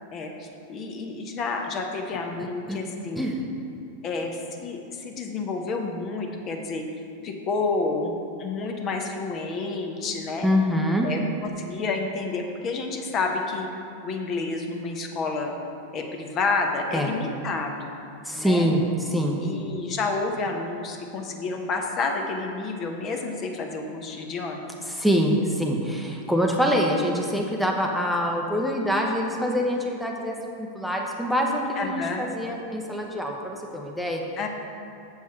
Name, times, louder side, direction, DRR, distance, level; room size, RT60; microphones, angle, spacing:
voice 1, 0.1-3.3 4.0-6.9 7.2-8.1 8.4-10.5 11.0-15.5 15.9-17.9 18.4-18.7 19.4-24.6 31.8-32.3 34.4-34.5, left 3 dB, 30° left, 3 dB, 0.8 m, -30 dB
voice 2, 2.4-2.8 3.2-3.4 10.4-11.1 16.9-17.1 18.2-19.4 24.8-34.2, equal, ahead, 0 dB, 0.7 m, -25 dB
7.3 x 7.3 x 4.5 m, 2.6 s
figure-of-eight pair, 90°, 0 cm